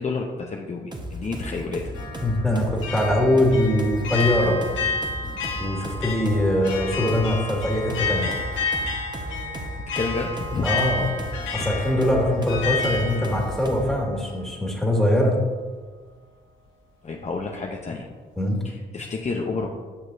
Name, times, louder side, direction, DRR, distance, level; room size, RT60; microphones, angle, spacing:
voice 1, 0.0-1.9 9.9-10.7 17.0-18.1 18.6-19.7, left 4 dB, 35° left, 0 dB, 0.7 m, -30 dB
sound 1, 0.9-14.0, equal, 20° right, 1.1 m, -35 dB
sound 2, 2.0-14.9, left 4 dB, 75° left, 1.2 m, -31 dB
voice 2, 2.2-4.6 5.6-8.3 10.6-11.0 11.5-15.4 18.4-18.6, left 1 dB, ahead, -2 dB, 1.9 m, -22 dB
8.8 x 6.0 x 2.6 m, 1.5 s
supercardioid pair, 55°, 20 cm